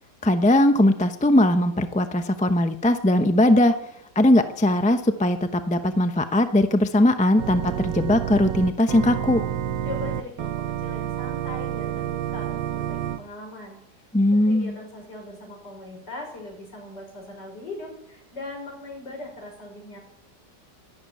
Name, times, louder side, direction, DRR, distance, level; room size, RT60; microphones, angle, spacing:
voice 1, 0.2-3.8 4.1-9.4 14.1-14.7, left 1 dB, 10° left, 8 dB, 0.4 m, -20 dB
Organ, 7.4-13.2, right 11 dB, 80° right, 1.5 m, -29 dB
voice 2, 9.8-14.0 14.5-20.0, left 2 dB, 70° left, 1 dB, 6.0 m, -39 dB
12.5 x 11.5 x 9.2 m, 0.76 s
omnidirectional pair, 1.9 m